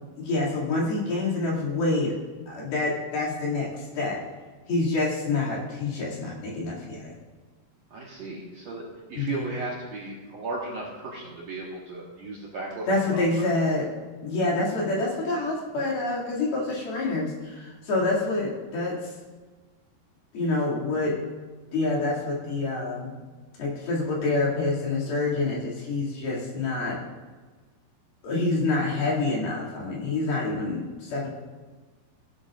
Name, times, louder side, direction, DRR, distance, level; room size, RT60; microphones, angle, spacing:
voice 1, 0.2-2.1 2.5-4.2 4.7-7.1 9.1-9.4 12.9-13.9 14.2-19.1 20.3-21.2 21.7-23.1 23.6-27.0 28.2-31.3, left 2 dB, 65° left, -6 dB, 4.4 m, -27 dB
voice 2, 7.9-12.9 13.1-13.5, right 2 dB, 60° right, -5 dB, 2.0 m, -36 dB
17.0 x 10.0 x 2.5 m, 1.3 s
omnidirectional pair, 4.7 m